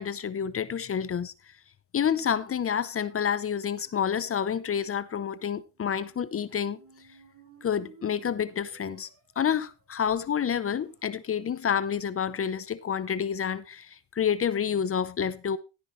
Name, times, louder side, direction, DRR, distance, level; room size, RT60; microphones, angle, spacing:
voice 1, 0.0-1.3 1.9-6.8 7.6-9.1 9.4-15.6, left 8 dB, 30° left, 0.7 m, -29 dB
sound 1, 5.7-11.6, right 5 dB, 40° right, 2.9 m, -56 dB
12.5 x 9.7 x 3.2 m
cardioid pair, 110°, 49 cm